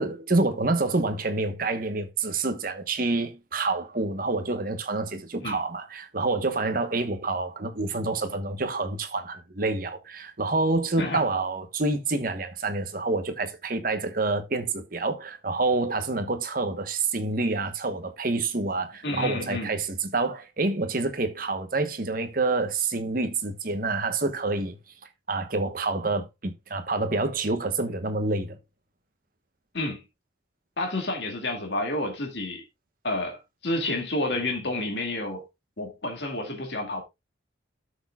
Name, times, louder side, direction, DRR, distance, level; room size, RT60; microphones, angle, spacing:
voice 1, 0.0-24.8 25.3-28.6, right 3 dB, 50° right, 1.1 m, -27 dB
voice 2, 19.0-19.7 29.7-30.0 30.8-32.6 33.0-35.4 35.8-37.0, left 2 dB, 65° left, 2.2 m, -30 dB
12.5 x 6.3 x 2.3 m
head